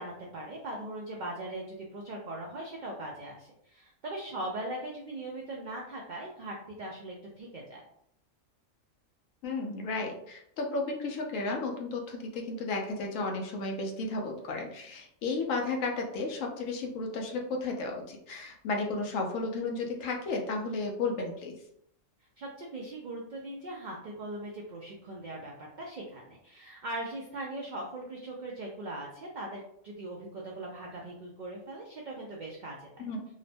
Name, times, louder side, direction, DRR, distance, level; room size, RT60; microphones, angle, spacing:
voice 1, 0.0-7.8 22.4-32.9, right 1 dB, 85° right, -2 dB, 0.4 m, -40 dB
voice 2, 9.4-21.5 33.0-33.3, left 3 dB, 85° left, 2 dB, 1.0 m, -33 dB
2.9 x 2.1 x 2.6 m, 0.73 s
omnidirectional pair, 1.3 m